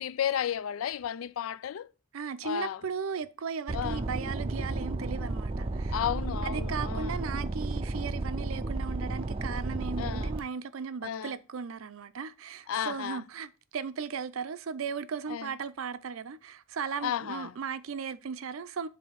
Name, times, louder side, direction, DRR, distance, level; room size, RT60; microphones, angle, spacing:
voice 1, 0.0-1.9 2.4-2.8 3.7-4.0 5.9-7.2 10.0-10.4 11.0-11.3 12.7-13.2 15.3-15.5 17.0-17.5, left 9 dB, 85° left, 0.4 m, -33 dB
voice 2, 2.1-6.0 6.4-18.9, right 6 dB, 85° right, 0.5 m, -37 dB
sound 1, 3.7-10.4, right 2 dB, 25° right, 0.5 m, -33 dB
7.5 x 2.7 x 5.6 m
head